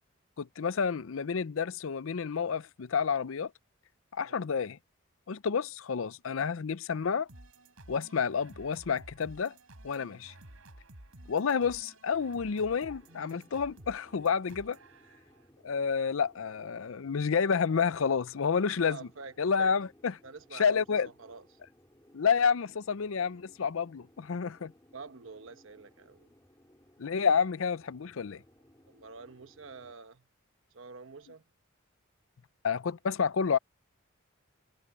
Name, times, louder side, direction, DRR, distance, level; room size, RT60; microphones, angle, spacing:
voice 1, 0.4-3.5 4.1-4.8 5.3-7.3 7.9-9.5 9.8-10.3 11.3-14.8 15.6-19.1 19.4-20.2 20.5-21.1 22.1-24.7 27.0-28.4 32.6-33.6, left 6 dB, 70° left, 0.5 m, -29 dB
sound 1, 7.3-15.5, right 1 dB, 85° right, 4.1 m, -53 dB
sound 2, 12.3-29.9, left 1 dB, 15° left, 3.1 m, -62 dB
voice 2, 18.8-19.7 20.2-21.6 24.9-26.3 28.2-28.4 28.8-30.2 30.7-31.4, right 4 dB, 65° right, 1.0 m, -48 dB
head